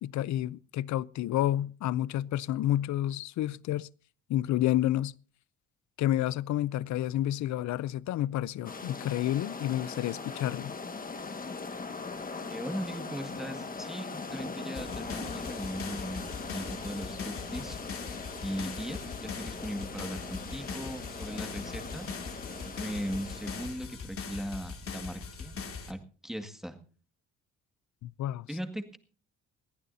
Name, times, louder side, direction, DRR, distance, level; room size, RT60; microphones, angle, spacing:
voice 1, 0.0-3.9 4.3-5.1 6.0-10.7 28.0-28.5, left 13 dB, 70° left, 0.6 m, -30 dB
sound 1, 8.6-23.7, left 4 dB, 30° left, 1.7 m, -40 dB
voice 2, 12.5-17.8 18.4-22.1 22.6-25.6 25.9-26.8 28.5-29.0, equal, ahead, 1.9 m, -38 dB
sound 2, 14.8-25.9, left 5 dB, 50° left, 2.3 m, -41 dB
21.5 x 15.0 x 2.7 m
cardioid pair, 90°, 30 cm